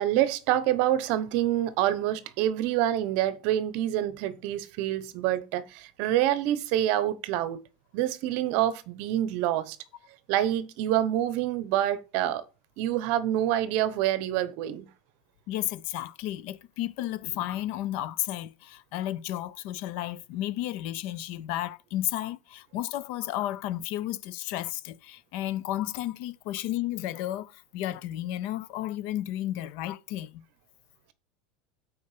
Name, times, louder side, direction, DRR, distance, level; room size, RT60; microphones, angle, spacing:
voice 1, 0.0-7.6 7.9-9.8 10.3-12.4 12.8-14.8, right 12 dB, 45° right, 0.9 m, -27 dB
voice 2, 15.5-30.4, left 14 dB, 45° left, 0.4 m, -33 dB
8.4 x 4.6 x 4.9 m
supercardioid pair, 175°, 4 cm